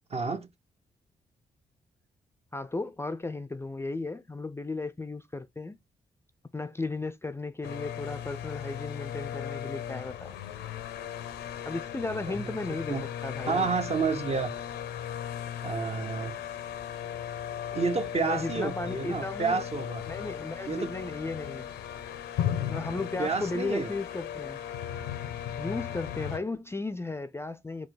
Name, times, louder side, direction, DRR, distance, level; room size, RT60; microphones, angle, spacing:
voice 1, 0.1-0.5 12.3-12.6 12.9-13.0 13.4-14.5 15.6-16.4 17.7-20.0 20.7-20.9 23.2-23.9, right 4 dB, 40° right, 0.7 m, -30 dB
voice 2, 2.5-5.8 6.5-10.4 11.7-13.7 18.2-19.6 20.1-21.7 22.7-24.6 25.6-27.9, left 3 dB, 15° left, 0.4 m, -35 dB
sound 1, 7.6-26.4, left 10 dB, 80° left, 0.5 m, -37 dB
4.6 x 2.2 x 3.8 m
hypercardioid pair, 40°, 17 cm